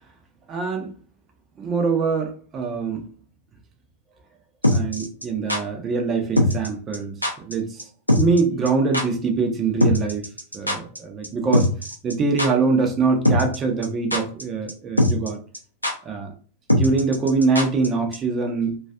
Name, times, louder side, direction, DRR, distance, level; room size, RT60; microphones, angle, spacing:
voice 1, 0.5-0.9 1.6-3.1 4.7-7.1 7.5-7.8 8.2-10.3 10.5-11.7 12.0-15.4 16.0-16.3 16.7-18.8, right 4 dB, 25° right, 0.6 m, -23 dB
sound 1, 4.6-5.6 6.4-6.7 6.9-7.0 7.2-7.5 7.8-7.9 8.1-8.4 8.7-8.8 8.9-9.0 9.8-11.0 11.2-11.3 11.5-12.1 12.4-12.5 13.3-13.6 13.8-14.4 14.7-14.8 15.0-15.3 15.5-15.6 15.8-15.9 16.7-17.9 18.1-18.2, left 1 dB, 85° left, 0.5 m, -20 dB
2.4 x 2.3 x 2.3 m
figure-of-eight pair, 90°, 0 cm